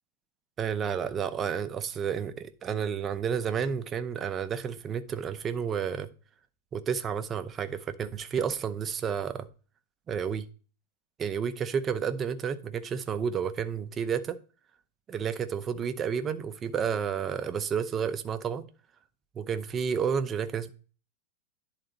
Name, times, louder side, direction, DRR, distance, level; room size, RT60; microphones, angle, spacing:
voice 1, 0.6-6.1 6.7-9.5 10.1-10.5 11.2-14.4 15.1-18.7 19.4-20.7, right 7 dB, 25° right, 0.7 m, -31 dB
10.5 x 4.0 x 4.0 m
supercardioid pair, 145°, 0 cm